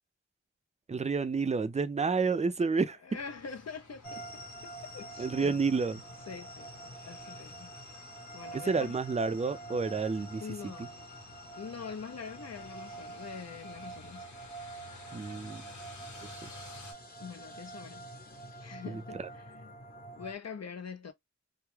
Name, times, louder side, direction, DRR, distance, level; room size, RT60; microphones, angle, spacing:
voice 1, 0.9-3.0 5.2-6.0 8.7-10.4 10.8-10.9 15.1-15.6 16.3-16.4 18.9-19.3, right 4 dB, 25° right, 0.4 m, -30 dB
voice 2, 2.7-5.6 6.3-6.7 7.0-7.8 8.3-9.0 10.4-10.9 11.6-14.3 17.2-18.1 18.6-19.7 20.2-21.1, left 6 dB, 60° left, 0.5 m, -44 dB
sound 1, 3.1-16.9, left 2 dB, 80° left, 1.0 m, -53 dB
sound 2, 4.0-20.4, right 1 dB, 30° left, 0.8 m, -47 dB
2.3 x 2.0 x 3.1 m
wide cardioid pair, 60°, 29 cm